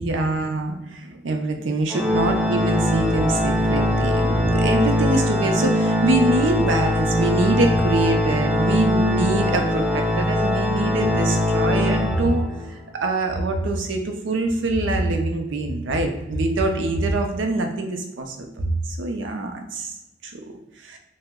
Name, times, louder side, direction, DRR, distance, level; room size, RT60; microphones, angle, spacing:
voice 1, 0.0-12.4 12.9-18.7 19.0-19.9 20.2-20.4 20.8-21.0, right 2 dB, 80° right, 4 dB, 0.5 m, -24 dB
Organ, 1.9-12.7, left 1 dB, 5° right, 0.4 m, -21 dB
2.8 x 2.1 x 3.5 m, 0.93 s
head